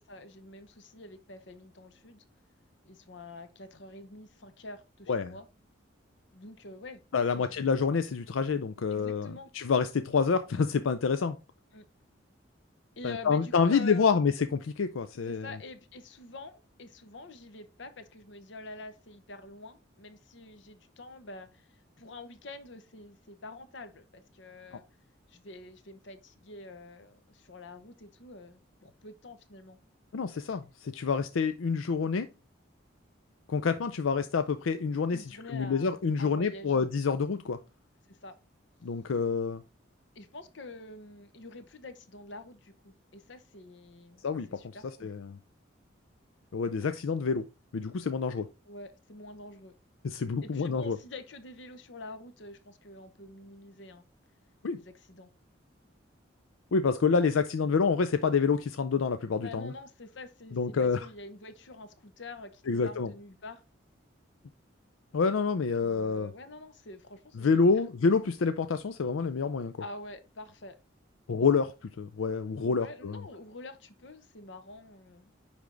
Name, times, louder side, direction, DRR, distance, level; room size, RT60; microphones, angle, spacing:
voice 1, 0.1-2.2 2.8-5.5 6.3-7.0 7.3-7.7 8.9-9.5 11.7-11.9 13.0-14.3 15.3-24.8 25.3-29.8 35.1-36.9 38.1-38.3 40.1-44.2 44.5-45.1 48.7-49.7 50.4-54.1 54.7-55.3 59.4-63.6 65.5-67.7 69.8-70.8 72.6-75.4, left 2 dB, 65° left, 0.9 m, -47 dB
voice 2, 7.1-11.4 13.0-15.5 30.1-32.3 33.5-37.6 38.8-39.6 44.2-44.8 45.0-45.4 46.5-47.4 47.7-48.5 50.0-51.0 54.6-54.8 56.7-59.7 60.5-61.1 62.7-63.1 65.1-66.3 67.4-69.7 71.3-73.2, left 5 dB, 90° left, 0.5 m, -28 dB
9.8 x 3.5 x 3.8 m
head